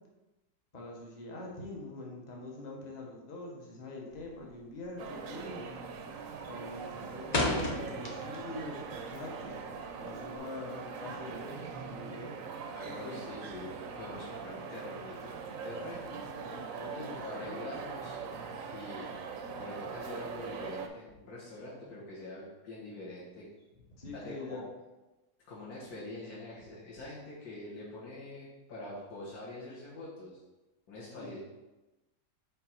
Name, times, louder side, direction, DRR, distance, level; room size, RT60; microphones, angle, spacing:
voice 1, 0.7-5.6 6.2-9.5 10.0-12.4 12.8-13.2 16.5-17.6 24.0-24.6 31.2-31.3, left 2 dB, 30° left, -1 dB, 0.9 m, -44 dB
sound 1, 4.1-4.5 4.8-5.1 5.5-5.9 6.2-8.6 8.9-10.4, left 2 dB, 85° left, 0.3 m, -33 dB
sound 2, 5.0-20.9, right 5 dB, 70° right, 0.8 m, -42 dB
voice 2, 12.7-16.2 17.2-18.2 18.7-19.1 19.6-23.5 23.7-23.8 24.1-24.6 25.4-30.4 30.9-31.4, left 1 dB, 60° left, -7 dB, 1.8 m, -44 dB
5.4 x 4.0 x 4.5 m, 1.1 s
omnidirectional pair, 1.9 m